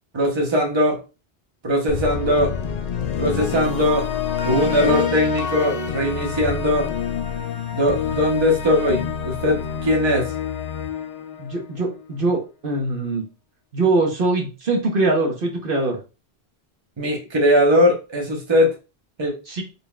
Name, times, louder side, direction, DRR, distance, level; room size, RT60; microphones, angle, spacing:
voice 1, 0.1-1.0 1.6-2.5 3.2-4.1 4.4-6.9 7.7-10.3 17.0-18.7 19.2-19.3, equal, 30° right, 1 dB, 1.0 m, -20 dB
sound 1, 1.9-12.1, left 7 dB, 55° left, 0.5 m, -27 dB
voice 2, 11.4-13.3 13.7-16.0 19.5-19.6, right 2 dB, 60° right, 1 dB, 1.1 m, -22 dB
3.9 x 3.8 x 2.3 m, 0.30 s
omnidirectional pair, 1.0 m